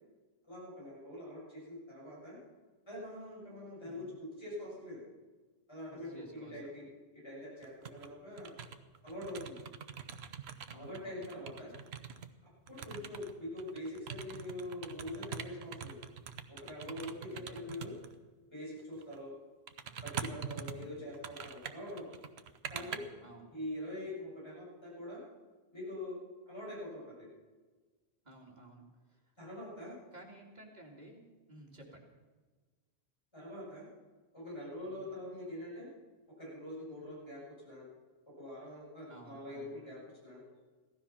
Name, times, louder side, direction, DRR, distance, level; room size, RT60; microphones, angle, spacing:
voice 1, 0.4-2.4 2.9-5.0 5.7-6.9 7.1-8.6 9.0-9.6 10.7-11.7 12.7-16.0 16.5-17.9 18.5-19.3 20.0-22.0 22.7-23.0 23.5-25.2 25.7-26.2 26.5-27.3 29.4-30.0 33.3-33.9 34.3-35.9 36.4-37.8 38.4-40.4, left 1 dB, 25° left, -6 dB, 7.0 m, -44 dB
voice 2, 5.9-6.7 10.7-11.4 12.9-13.2 17.3-17.7 20.5-21.1 22.7-22.9 23.2-23.5 28.2-29.3 30.1-32.0 34.8-35.1 39.1-39.8, right 2 dB, 40° right, -1 dB, 2.7 m, -55 dB
sound 1, 7.6-8.1 8.4-12.3 12.7-18.1 19.0-19.2 19.7-23.0, right 7 dB, 75° right, 1.1 m, -44 dB
16.5 x 12.5 x 5.8 m, 1.3 s
omnidirectional pair, 1.1 m